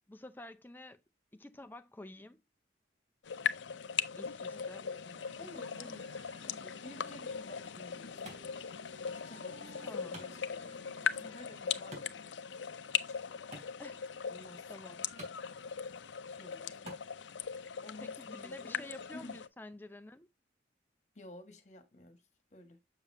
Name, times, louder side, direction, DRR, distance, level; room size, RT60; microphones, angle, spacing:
voice 1, 0.1-1.0 1.3-2.4 4.2-4.8 9.8-10.2 13.8-14.0 14.7-15.1 18.0-20.3, left 2 dB, 10° left, 0.6 m, -50 dB
sound 1, 3.2-19.5, left 7 dB, 80° left, 0.6 m, -39 dB
voice 2, 4.5-8.6 9.0-10.9 11.1-12.4 13.1-13.7 14.3-14.6 16.2-16.8 17.8-18.8 19.1-19.4 21.1-22.2 22.5-22.8, left 1 dB, 40° left, 1.5 m, -53 dB
Wind instrument woodwind instrument, 5.1-12.2, right 1 dB, 80° right, 2.4 m, -58 dB
Wood, 7.4-17.4, equal, 40° right, 3.0 m, -56 dB
6.9 x 6.8 x 2.6 m
head